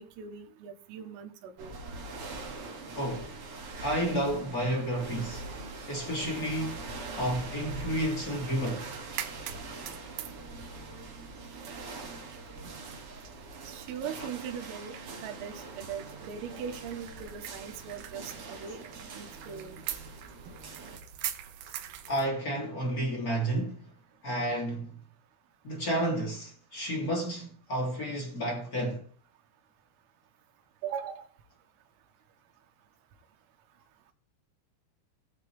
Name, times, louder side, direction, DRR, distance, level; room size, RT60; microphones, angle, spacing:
voice 1, 0.0-1.7 13.7-15.0 15.2-18.8 19.1-19.8 30.8-31.2, right 7 dB, 90° right, 4.2 m, -40 dB
sound 1, 1.6-21.0, right 3 dB, 40° right, 2.2 m, -43 dB
voice 2, 2.9-3.3 3.8-5.5 5.9-6.9 7.2-8.9 14.2-14.3 22.1-23.9 24.2-25.0 25.6-29.0, right 1 dB, 25° left, 2.4 m, -31 dB
sound 2, 7.7-22.3, right 9 dB, 75° right, 2.3 m, -44 dB
20.5 x 6.9 x 3.4 m
omnidirectional pair, 5.8 m